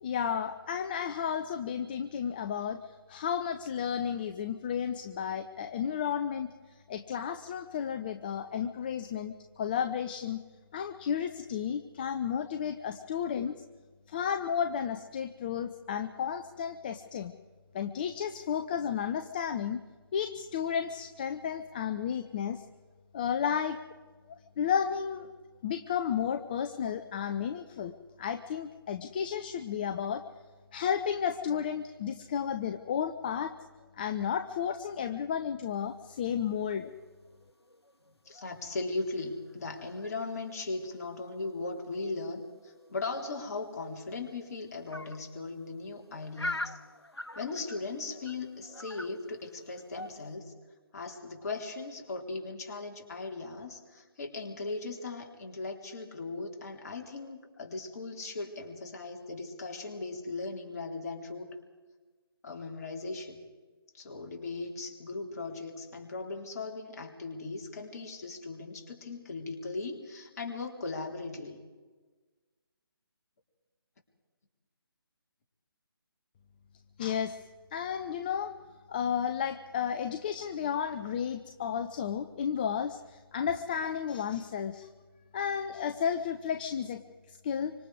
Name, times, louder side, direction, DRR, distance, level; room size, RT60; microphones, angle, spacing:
voice 1, 0.0-6.5 6.9-10.4 10.7-13.6 14.1-17.3 17.7-19.8 20.1-22.6 23.1-23.8 24.3-25.3 25.6-30.2 30.7-33.5 34.0-36.9 77.0-77.4 77.7-78.5 78.9-84.9 85.3-87.0 87.3-87.7, left 8 dB, 20° left, 9 dB, 0.6 m, -32 dB
sound 1, 35.6-38.6 38.9-41.4 41.9-42.2 42.5-42.6 42.7-50.3, left 1 dB, 90° left, 1.1 m, -44 dB
voice 2, 38.3-46.8 47.4-50.5 50.9-61.5 62.4-63.4 63.9-71.6, left 3 dB, 40° left, 2 dB, 3.7 m, -38 dB
25.5 x 25.5 x 4.9 m, 1.3 s
figure-of-eight pair, 145°, 13 cm